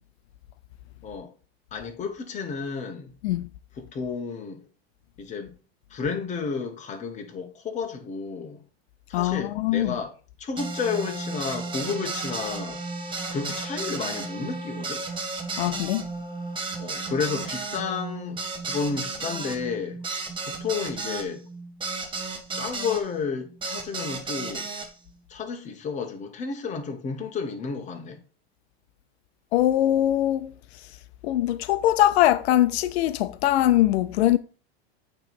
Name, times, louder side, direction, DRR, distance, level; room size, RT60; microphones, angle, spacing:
voice 1, 1.7-3.1 3.8-4.6 5.2-5.5 5.9-8.6 9.1-12.8 13.3-15.0 16.8-20.0 20.5-21.4 22.5-24.7 25.3-28.2, left 5 dB, 25° left, 1.1 m, -32 dB
voice 2, 9.1-10.0 15.6-16.0 29.5-30.5 31.2-34.4, left 13 dB, 85° left, 0.5 m, -22 dB
sound 1, 10.6-23.0 23.6-24.9, right 3 dB, 15° right, 1.0 m, -33 dB
8.8 x 3.1 x 4.2 m
supercardioid pair, 140°, 31 cm